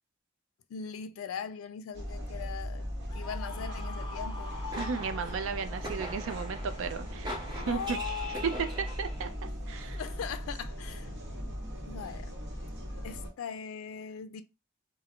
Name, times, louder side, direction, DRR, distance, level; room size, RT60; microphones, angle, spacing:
voice 1, 0.7-2.9 3.1-4.6 7.5-8.8 9.8-11.1 11.9-12.4 12.9-14.4, left 7 dB, 85° left, 0.3 m, -40 dB
sound 1, 1.9-13.3, equal, 55° right, 0.9 m, -38 dB
Screaming, 3.1-5.8, left 3 dB, 25° left, 0.8 m, -44 dB
sound 2, 4.3-9.4, equal, 20° right, 0.7 m, -42 dB
voice 2, 4.8-8.0 9.0-10.0, right 5 dB, 70° right, 0.4 m, -36 dB
2.3 x 2.0 x 3.5 m
head